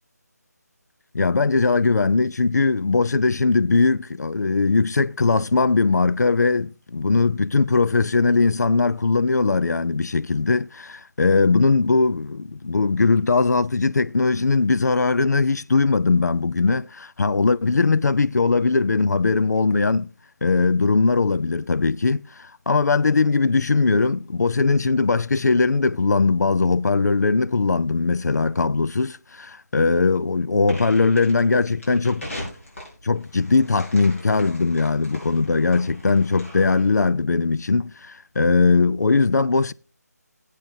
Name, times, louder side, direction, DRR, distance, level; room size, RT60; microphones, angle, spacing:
voice 1, 1.1-20.1 20.4-32.5 33.0-39.7, left 4 dB, 70° left, 0.5 m, -20 dB
sound 1, 30.6-37.0, left 1 dB, 50° left, 5.6 m, -40 dB
17.5 x 8.4 x 2.7 m
figure-of-eight pair, 165°, 9 cm